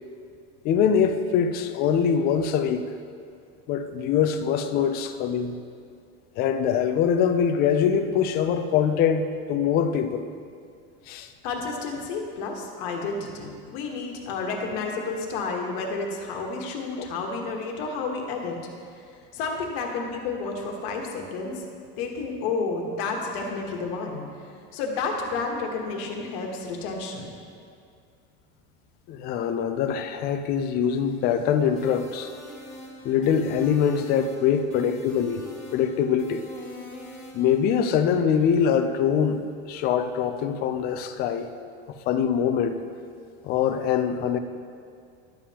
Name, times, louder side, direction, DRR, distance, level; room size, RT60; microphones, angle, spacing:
voice 1, 0.6-2.9 3.7-5.6 6.4-10.3 11.1-11.3 17.0-17.1 29.1-32.3 33.0-35.5 35.7-36.4 37.3-39.4 39.7-41.5 42.1-42.8 43.4-44.4, left 7 dB, 30° left, 8 dB, 0.4 m, -23 dB
voice 2, 11.4-18.6 19.0-19.1 19.3-21.6 22.0-24.2 24.7-27.3, left 4 dB, 65° left, 1 dB, 1.3 m, -31 dB
sound 1, 31.8-37.6, equal, ahead, 1.3 m, -42 dB
11.5 x 7.3 x 2.9 m, 2.3 s
cardioid pair, 160°, 31 cm